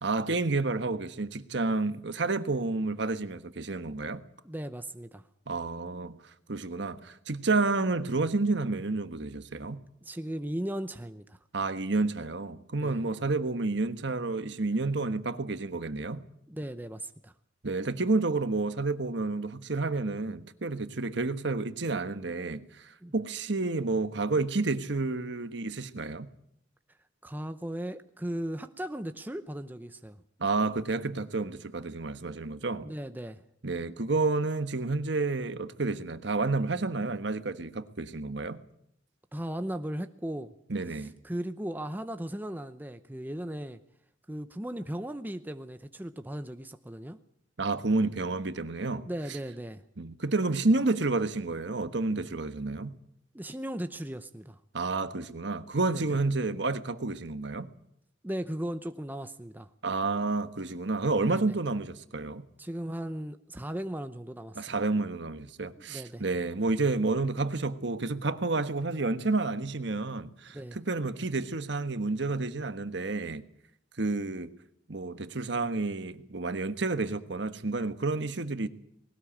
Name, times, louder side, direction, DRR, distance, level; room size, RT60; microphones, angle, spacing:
voice 1, 0.0-4.2 5.5-6.1 6.5-9.8 11.5-16.2 17.6-26.3 30.4-32.9 33.6-38.6 40.7-41.1 47.6-49.0 49.3-49.4 50.0-53.0 54.7-57.7 59.8-62.4 64.6-73.4 74.0-74.5 74.9-78.7, right 3 dB, 65° right, 1.3 m, -30 dB
voice 2, 4.4-5.2 10.0-11.4 12.8-13.0 16.5-17.3 23.0-23.1 27.2-30.2 32.8-33.4 39.3-40.5 41.2-43.8 44.3-47.2 49.0-49.8 53.3-54.6 55.9-56.1 58.2-59.7 61.3-61.4 62.6-64.6 65.8-66.2 70.5-70.8, right 1 dB, 10° right, 0.8 m, -37 dB
20.0 x 18.0 x 8.7 m
head